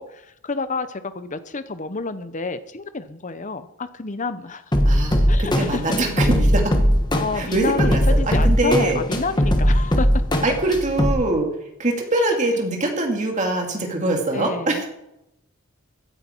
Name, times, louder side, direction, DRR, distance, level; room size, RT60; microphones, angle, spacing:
voice 1, 0.0-4.6 5.3-5.8 7.1-10.4 14.3-14.8, left 3 dB, 35° left, 12 dB, 0.8 m, -29 dB
sound 1, 4.7-11.1, equal, 20° left, 1.3 m, -19 dB
voice 2, 4.8-6.7 7.3-8.0 8.3-9.0 10.4-11.5 11.8-14.9, right 2 dB, 35° right, 2 dB, 2.5 m, -23 dB
16.5 x 9.7 x 4.5 m, 0.86 s
head